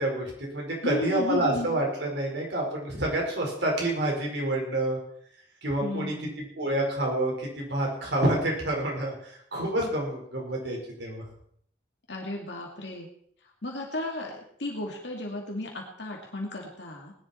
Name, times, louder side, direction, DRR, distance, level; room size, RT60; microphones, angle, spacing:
voice 1, 0.0-5.0 5.6-11.2, right 1 dB, 70° right, -1 dB, 5.0 m, -28 dB
voice 2, 0.8-1.7 5.8-6.4 12.1-13.1 13.6-17.1, left 1 dB, 65° left, 0 dB, 2.4 m, -34 dB
19.0 x 11.0 x 4.4 m, 0.64 s
head